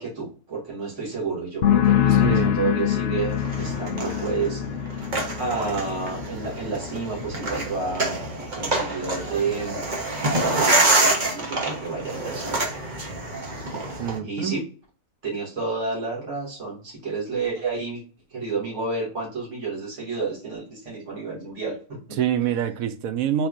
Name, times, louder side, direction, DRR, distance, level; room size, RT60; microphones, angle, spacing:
voice 1, 0.0-4.6 5.4-9.8 10.2-12.7 14.2-14.6 15.2-18.0 18.3-22.2, right 4 dB, 50° right, 2.6 m, -30 dB
sound 1, 1.6-9.1 9.4-9.9, left 10 dB, 65° left, 0.6 m, -26 dB
voice 2, 2.2-2.6 14.0-14.5 22.2-23.5, right 9 dB, 75° right, 1.1 m, -25 dB
sound 2, 3.3-14.2, right 2 dB, 35° right, 1.2 m, -26 dB
4.3 x 4.2 x 2.6 m
omnidirectional pair, 1.6 m